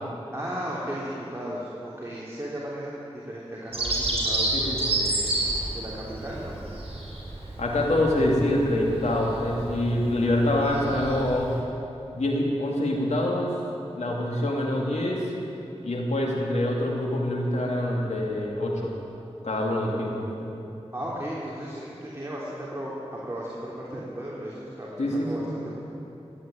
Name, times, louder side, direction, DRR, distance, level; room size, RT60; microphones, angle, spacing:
voice 1, 0.3-3.0 3.3-3.9 4.2-6.6 19.8-19.9 20.9-25.8, equal, 25° right, -6 dB, 3.2 m, -35 dB
Bird vocalization bird call bird song, 3.7-11.6, right 2 dB, 60° right, 4.7 m, -30 dB
voice 2, 7.6-11.5 12.1-13.5 14.0-15.2 15.8-18.9 19.4-20.5 25.0-25.5, left 1 dB, 85° left, -1 dB, 2.7 m, -25 dB
15.5 x 9.6 x 9.1 m, 2.9 s
cardioid pair, 45°, 11 cm